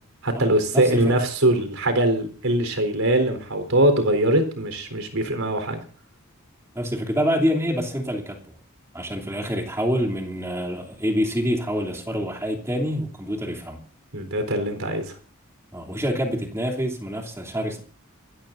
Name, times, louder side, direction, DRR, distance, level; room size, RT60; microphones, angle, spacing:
voice 1, 0.2-5.8 14.1-15.0, right 1 dB, 80° right, 4.1 m, -22 dB
voice 2, 0.7-1.2 6.7-8.4 8.9-13.8 15.7-17.8, equal, 15° right, 3.0 m, -26 dB
26.5 x 13.5 x 2.7 m
head